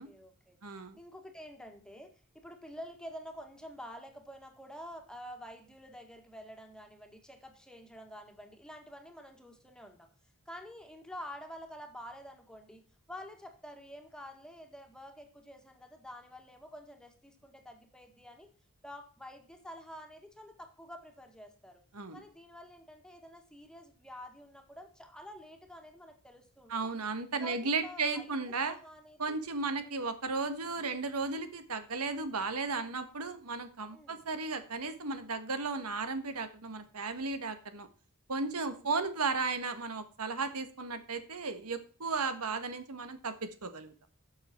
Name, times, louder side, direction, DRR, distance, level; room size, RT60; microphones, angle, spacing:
voice 1, 0.0-0.6 1.0-10.1 10.5-18.5 18.8-21.8 22.1-27.0 27.4-28.4 28.6-29.4 30.6-30.9 33.9-34.2 38.5-38.9, equal, 5° left, 4 dB, 1.9 m, -49 dB
voice 2, 0.6-1.0 21.9-22.2 26.7-28.7 29.2-37.9 38.3-43.9, right 4 dB, 85° right, 10 dB, 1.5 m, -35 dB
12.5 x 6.9 x 4.4 m, 0.39 s
head